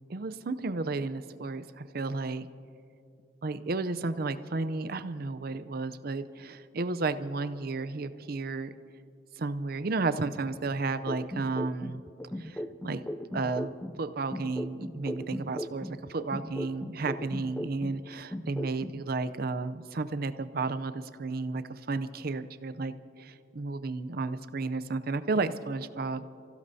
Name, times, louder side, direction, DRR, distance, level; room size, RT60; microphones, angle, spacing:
voice 1, 0.1-2.5 3.4-8.7 9.4-12.0 12.4-13.0 13.3-13.7 14.0-26.3, right 3 dB, 55° right, 12 dB, 0.6 m, -33 dB
sound 1, 11.1-14.0 14.3-18.0 18.3-19.0, left 1 dB, 10° left, 0.4 m, -37 dB
29.5 x 16.0 x 2.7 m, 2.4 s
head